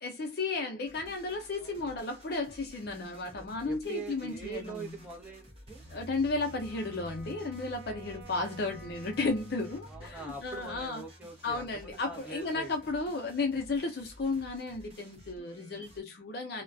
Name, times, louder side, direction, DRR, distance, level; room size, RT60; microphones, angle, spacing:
voice 1, 0.0-4.9 5.9-11.0 11.4-16.6, left 3 dB, 60° left, 0.5 m, -34 dB
sound 1, 0.8-16.0, equal, 30° right, 0.9 m, -54 dB
voice 2, 1.6-2.0 3.3-5.8 9.9-12.7, right 4 dB, 5° right, 0.8 m, -43 dB
sound 2, 5.7-14.5, equal, 50° right, 0.5 m, -53 dB
Wind instrument woodwind instrument, 6.4-10.6, right 2 dB, 90° right, 0.7 m, -53 dB
2.3 x 2.2 x 2.5 m
head